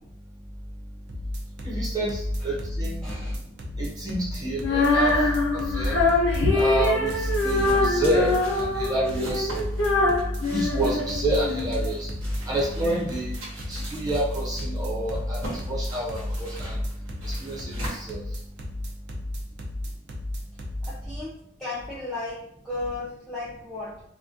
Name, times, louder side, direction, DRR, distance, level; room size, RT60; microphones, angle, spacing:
sound 1, 1.1-20.9, left 1 dB, 60° right, 0.5 m, -33 dB
voice 1, 1.6-3.0 3.8-5.1 5.7-6.0 6.5-9.5 10.5-12.1 12.5-13.3 13.7-15.4 15.7-16.8 17.2-17.8 18.1-18.2, right 1 dB, 20° right, -6 dB, 0.8 m, -28 dB
voice 2, 3.0-3.4 20.8-24.0, left 2 dB, ahead, -9 dB, 0.4 m, -35 dB
Female singing, 4.6-11.7, left 2 dB, 85° left, 0.6 m, -24 dB
sound 2, 6.2-18.7, right 1 dB, 85° right, 1.0 m, -41 dB
2.2 x 2.2 x 2.6 m, 0.70 s
head